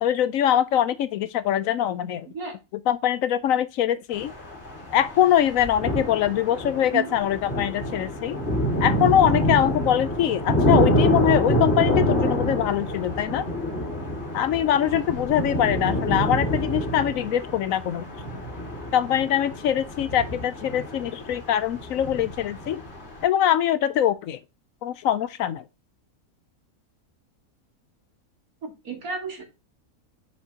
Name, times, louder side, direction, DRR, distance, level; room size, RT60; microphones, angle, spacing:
voice 1, 0.0-2.3 2.9-4.3 4.9-8.4 8.8-13.5 14.3-18.0 18.9-22.8 23.2-24.4 24.8-25.6, left 10 dB, 70° left, 0.9 m, -23 dB
sound 1, 4.1-23.2, equal, 45° left, 2.5 m, -27 dB
voice 2, 28.6-29.4, right 5 dB, 80° right, 2.6 m, -32 dB
6.5 x 5.7 x 2.8 m
omnidirectional pair, 1.5 m